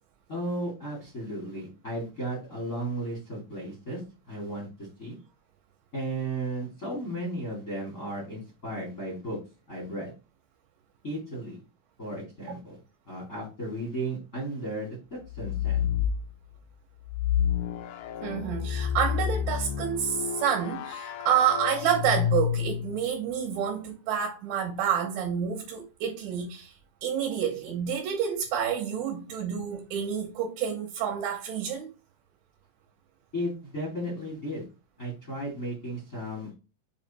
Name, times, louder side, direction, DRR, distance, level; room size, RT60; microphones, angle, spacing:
voice 1, 0.3-4.0 4.3-5.1 5.9-9.4 9.7-10.1 11.0-11.6 12.0-12.8 13.1-15.8 33.3-34.7 35.0-36.6, right 1 dB, 40° left, 1.1 m, -35 dB
sound 1, 15.3-16.2 17.1-23.1, left 9 dB, 80° left, 2.6 m, -29 dB
voice 2, 18.2-26.7 27.0-31.9, right 8 dB, 75° right, 3.1 m, -29 dB
7.6 x 3.2 x 4.2 m
omnidirectional pair, 6.0 m